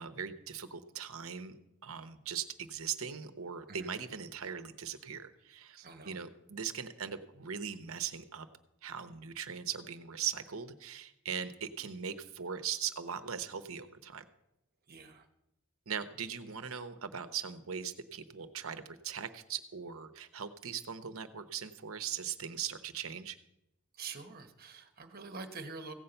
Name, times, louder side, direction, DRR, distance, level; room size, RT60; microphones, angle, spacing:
voice 1, 0.0-1.6 1.8-8.5 8.8-14.2 15.9-23.4, right 7 dB, 70° right, 10 dB, 0.9 m, -40 dB
voice 2, 5.8-6.2 14.9-15.3 24.0-25.9, right 4 dB, 45° right, 6 dB, 1.2 m, -45 dB
16.0 x 5.6 x 7.9 m, 0.87 s
head